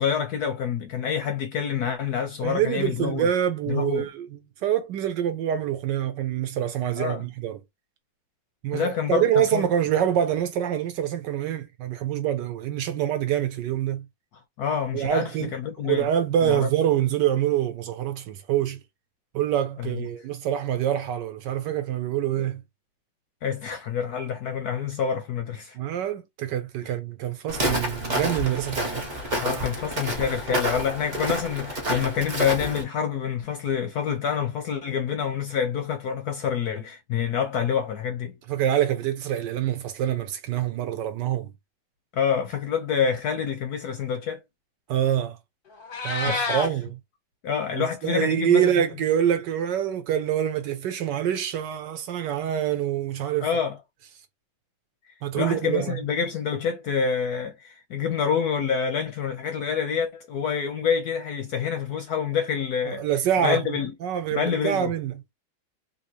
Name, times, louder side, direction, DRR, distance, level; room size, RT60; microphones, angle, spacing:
voice 1, 0.0-3.3 3.7-4.1 7.0-7.2 8.7-9.3 9.5-9.6 14.6-16.1 16.4-16.7 19.8-20.0 23.4-25.8 29.4-38.4 42.1-44.4 46.3-46.4 47.4-48.8 53.4-53.8 55.1-63.0 63.4-63.9 64.3-64.9, left 7 dB, 70° left, 0.9 m, -27 dB
voice 2, 2.4-7.6 8.6-14.1 14.9-15.5 15.8-18.8 19.3-22.6 25.7-29.0 38.5-41.5 44.9-45.4 46.0-47.0 47.7-53.5 55.2-56.0 62.9-65.1, right 10 dB, 70° right, 1.2 m, -26 dB
Walk footsteps, 27.5-32.8, equal, 35° right, 0.7 m, -29 dB
Meow, 45.7-46.7, left 3 dB, 45° left, 0.7 m, -28 dB
3.5 x 2.7 x 2.7 m
omnidirectional pair, 2.2 m